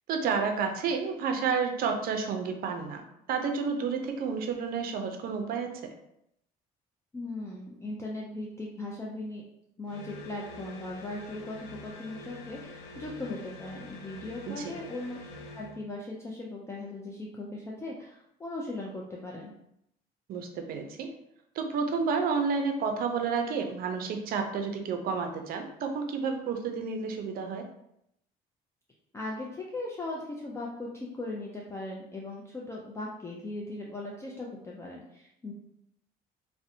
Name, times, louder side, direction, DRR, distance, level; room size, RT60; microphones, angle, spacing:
voice 1, 0.1-5.9 14.5-14.7 20.3-21.1 21.5-27.7, right 5 dB, 60° right, 4 dB, 0.4 m, -30 dB
voice 2, 7.1-9.4 9.8-19.5 29.1-35.5, left 2 dB, 15° left, -3 dB, 0.3 m, -38 dB
sound 1, 9.9-15.8, left 2 dB, 85° left, 0.4 m, -46 dB
2.5 x 2.1 x 2.6 m, 0.78 s
cardioid pair, 110°, 17 cm